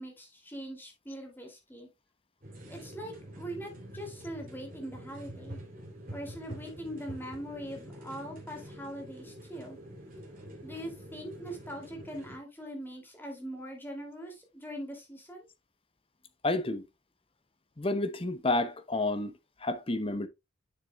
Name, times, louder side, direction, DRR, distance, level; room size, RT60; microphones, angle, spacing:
voice 1, 0.0-1.9 2.7-5.6 6.1-9.8 10.6-15.5, equal, 10° left, 2.6 m, -42 dB
sound 1, 2.4-12.4, right 1 dB, 40° right, 3.0 m, -46 dB
voice 2, 16.4-16.8 17.8-19.3 19.6-20.3, left 2 dB, 25° left, 0.9 m, -30 dB
9.9 x 6.9 x 2.3 m
head